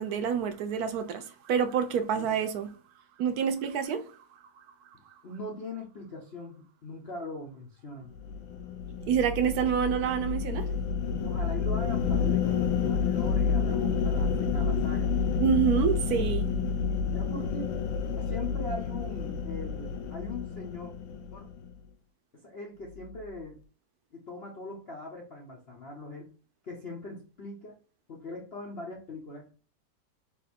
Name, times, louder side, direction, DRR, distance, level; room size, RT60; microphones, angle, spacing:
voice 1, 0.0-2.7 3.2-4.0 9.1-10.6 15.4-16.5, right 8 dB, 70° right, 0.9 m, -27 dB
voice 2, 5.2-8.1 11.2-15.1 17.1-17.8 18.2-20.9 21.3-21.5 22.3-23.6 24.1-26.3 26.6-27.8 28.1-29.5, left 2 dB, 65° left, 0.6 m, -41 dB
sound 1, 8.2-21.7, left 6 dB, 85° left, 1.4 m, -29 dB
4.0 x 2.5 x 4.1 m
omnidirectional pair, 2.1 m